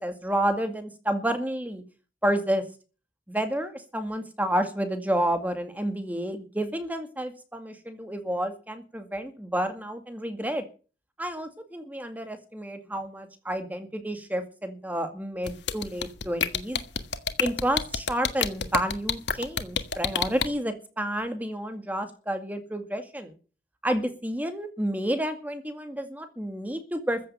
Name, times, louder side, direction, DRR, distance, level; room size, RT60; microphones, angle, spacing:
voice 1, 0.0-1.8 2.2-2.6 3.3-10.6 11.2-16.8 17.4-23.3 23.8-27.2, right 1 dB, 10° right, 7 dB, 2.1 m, -30 dB
sound 1, 15.5-20.5, left 7 dB, 90° left, 1.6 m, -27 dB
15.0 x 7.7 x 8.9 m, 0.37 s
head